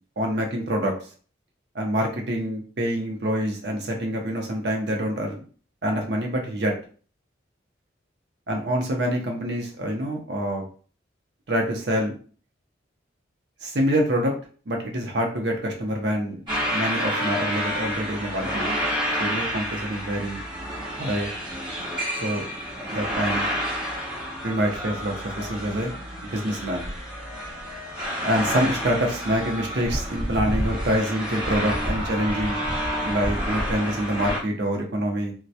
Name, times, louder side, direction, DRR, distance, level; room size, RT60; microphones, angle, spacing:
voice 1, 0.2-0.9 1.7-5.4 5.8-6.8 8.5-10.6 11.5-12.1 13.6-14.3 14.7-16.4 16.7-18.6 19.2-20.4 21.0-21.3 22.2-22.5 22.9-23.5 24.4-25.9 26.2-26.9 28.2-32.6 33.0-35.3, equal, 60° right, 1 dB, 0.6 m, -26 dB
sound 1, 16.5-34.4, equal, 25° right, 1.0 m, -29 dB
2.2 x 2.1 x 2.6 m, 0.41 s
head